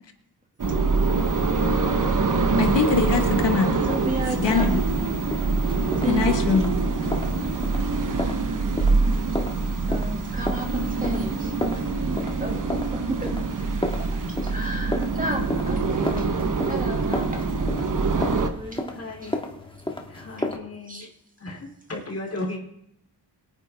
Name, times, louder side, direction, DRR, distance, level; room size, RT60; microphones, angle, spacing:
sound 1, 0.6-18.5, right 3 dB, 50° right, 1.1 m, -24 dB
voice 1, 2.6-3.8 4.4-4.8 6.0-6.7, left 5 dB, 90° left, 4 dB, 1.8 m, -22 dB
voice 2, 3.8-4.8 6.0-6.5 9.8-11.5 12.4-13.3 14.4-16.3 16.7-17.7 18.1-18.9 20.4-20.5 20.9-21.1, right 2 dB, 20° right, 1 dB, 2.2 m, -33 dB
sound 2, 3.9-20.6, left 1 dB, 10° left, 1.6 m, -34 dB
voice 3, 18.9-19.4 20.1-21.1 21.4-22.6, left 2 dB, 35° left, -1 dB, 3.0 m, -35 dB
23.0 x 9.1 x 3.5 m, 0.78 s
wide cardioid pair, 145°, 42 cm